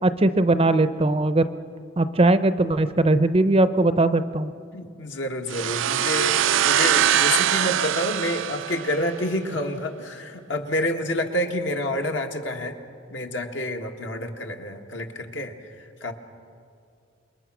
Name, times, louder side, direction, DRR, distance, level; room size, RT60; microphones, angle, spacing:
voice 1, 0.0-1.5 2.0-4.5, right 2 dB, 30° right, 12 dB, 0.6 m, -20 dB
voice 2, 4.7-12.7 13.1-15.5 16.0-16.1, left 1 dB, 70° left, 3 dB, 1.7 m, -28 dB
sound 1, 5.5-9.2, right 10 dB, 75° right, 0.5 m, -22 dB
27.5 x 22.0 x 6.1 m, 2.3 s
head